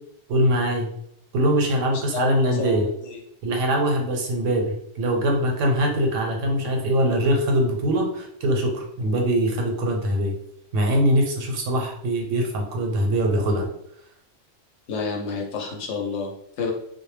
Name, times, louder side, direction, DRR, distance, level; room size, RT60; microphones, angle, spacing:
voice 1, 0.3-0.9 1.3-2.8 3.4-10.3 10.7-13.7, equal, 85° right, 2 dB, 1.0 m, -22 dB
voice 2, 1.9-3.2 14.9-16.7, left 5 dB, 70° left, 0 dB, 0.9 m, -30 dB
2.1 x 2.1 x 3.1 m, 0.71 s
omnidirectional pair, 1.3 m